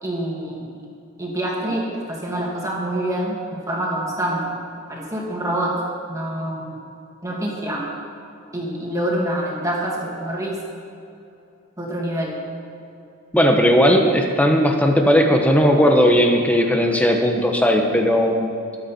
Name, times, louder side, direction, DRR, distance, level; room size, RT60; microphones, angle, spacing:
voice 1, 0.0-0.7 1.2-4.5 4.9-5.7 6.1-6.8 7.2-7.8 8.5-10.6 11.8-12.4, right 1 dB, 15° right, -3 dB, 2.5 m, -26 dB
voice 2, 13.3-18.5, equal, 5° left, 3 dB, 1.1 m, -17 dB
22.0 x 8.4 x 4.5 m, 2.7 s
head